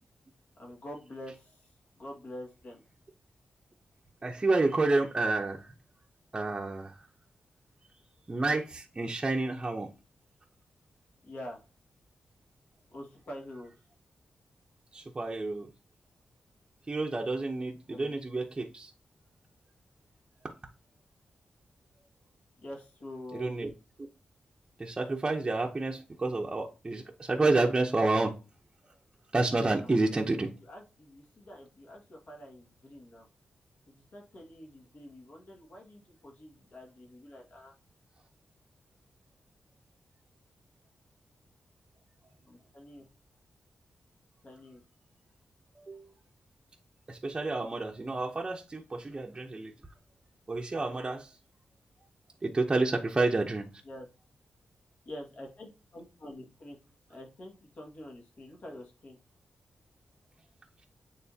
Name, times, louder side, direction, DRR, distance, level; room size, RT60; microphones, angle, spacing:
voice 1, 0.6-1.7 2.0-2.8 11.2-11.6 12.9-13.7 17.9-18.2 22.6-23.6 29.8-33.2 33.9-37.8 42.5-43.1 44.4-44.8 53.8-54.1 55.1-56.8 57.1-59.2, left 1 dB, 60° left, -1 dB, 1.9 m, -46 dB
voice 2, 4.2-5.7 6.3-7.0 8.3-9.9 14.9-15.7 16.9-18.9 23.3-23.7 24.8-28.3 29.3-30.5 45.8-46.1 47.1-49.7 50.5-51.3 52.4-53.7, right 2 dB, 25° right, -1 dB, 0.7 m, -29 dB
9.1 x 3.7 x 2.8 m, 0.31 s
wide cardioid pair, 115°, 3 cm